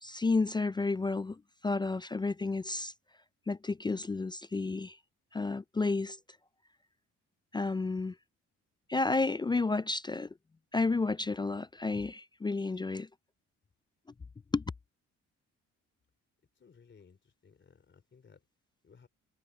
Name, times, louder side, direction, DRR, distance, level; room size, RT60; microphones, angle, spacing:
voice 1, 0.0-2.9 3.5-5.0 5.3-6.2 7.5-8.1 8.9-10.3 10.7-13.1 14.5-14.6, left 3 dB, 15° left, 0.3 m, -31 dB
voice 2, 16.5-18.4 18.8-19.1, left 6 dB, 40° left, 3.6 m, -60 dB
cardioid pair, 90°, 30 cm